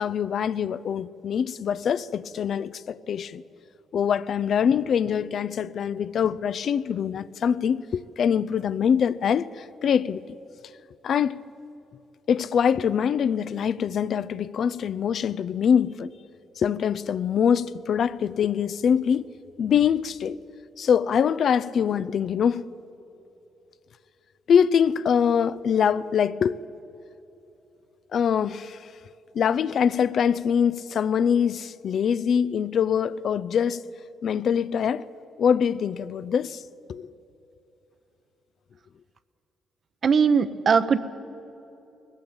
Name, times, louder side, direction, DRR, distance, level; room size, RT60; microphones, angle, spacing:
voice 1, 0.0-3.4 3.9-10.2 11.0-11.4 12.3-16.1 16.6-19.3 19.6-20.4 20.8-22.7 24.5-26.6 28.1-28.8 29.3-33.8 34.2-35.1 35.4-36.6 36.9-37.1, left 7 dB, 60° left, 0.5 m, -24 dB
voice 2, 40.0-41.0, right 6 dB, 50° right, 0.9 m, -20 dB
19.0 x 16.0 x 8.7 m
cardioid pair, 90°, 0 cm